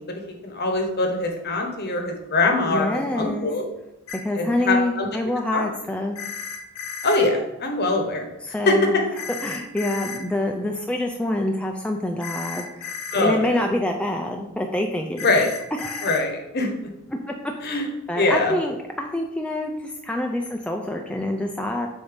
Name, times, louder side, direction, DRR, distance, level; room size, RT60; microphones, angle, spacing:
voice 1, 0.0-3.6 4.3-5.1 5.5-5.6 7.0-8.7 13.1-13.6 15.2-15.5 16.0-16.7 17.6-17.9 18.2-18.6, left 2 dB, 50° left, 3 dB, 1.0 m, -23 dB
voice 2, 2.7-3.5 4.2-6.2 8.4-8.9 9.4-15.3 15.8-16.2 17.1-21.9, left 1 dB, 5° left, 2 dB, 0.3 m, -26 dB
sound 1, 4.1-4.2 6.2-7.2 9.2-10.2 12.2-13.2 15.2-16.2, left 6 dB, 70° left, 0.8 m, -34 dB
6.9 x 2.7 x 5.1 m, 0.91 s
head